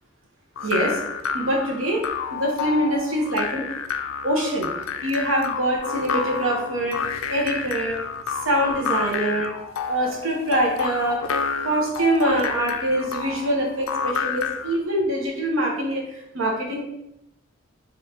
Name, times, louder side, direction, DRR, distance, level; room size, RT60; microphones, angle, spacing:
sound 1, 0.6-14.8, left 6 dB, 90° left, 0.3 m, -29 dB
voice 1, 0.6-1.0 1.3-2.0 2.3-3.7 4.2-4.7 5.0-7.0 7.3-8.0 8.3-9.5 9.9-11.2 11.6-16.8, right 1 dB, 85° right, 0 dB, 0.9 m, -24 dB
3.0 x 2.8 x 3.3 m, 0.84 s
head